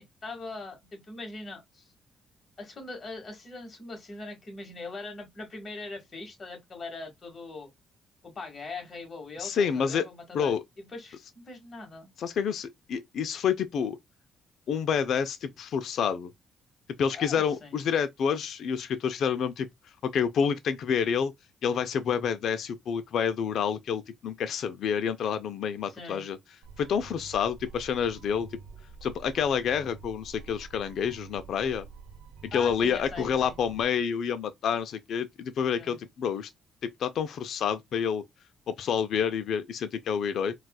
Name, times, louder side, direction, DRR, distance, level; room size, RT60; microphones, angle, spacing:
voice 1, 0.0-1.9 2.6-7.7 8.2-12.1 17.1-17.7 26.0-26.2 32.5-33.6 35.8-36.0, left 3 dB, 40° left, 1.6 m, -41 dB
voice 2, 9.4-10.1 10.3-10.6 12.2-14.0 14.7-16.3 17.0-21.3 21.6-26.4 26.8-28.6 29.0-31.9 32.5-36.5 36.8-38.2 38.7-40.5, left 7 dB, 70° left, 0.4 m, -28 dB
sound 1, 26.6-33.8, right 5 dB, 90° right, 0.7 m, -48 dB
4.0 x 2.3 x 2.2 m
cardioid pair, 90°, 0 cm